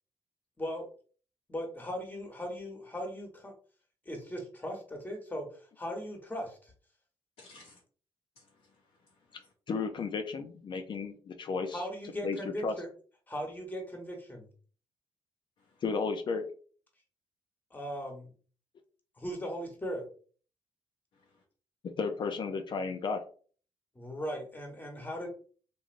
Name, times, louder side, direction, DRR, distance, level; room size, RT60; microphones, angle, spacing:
voice 1, 1.5-3.5 4.0-6.7 11.7-12.9 13.3-14.5 17.7-18.3 19.2-20.0 23.9-25.3, equal, 15° left, 2 dB, 1.1 m, -38 dB
voice 2, 7.4-7.8 8.4-9.5 15.6-15.8 21.1-21.4, left 3 dB, 75° left, -2 dB, 0.7 m, -59 dB
voice 3, 9.7-11.8 12.2-12.7 15.8-16.5 22.0-23.2, left 4 dB, 50° left, 6 dB, 0.4 m, -33 dB
3.1 x 2.5 x 2.5 m, 0.42 s
cardioid pair, 75°, 10 cm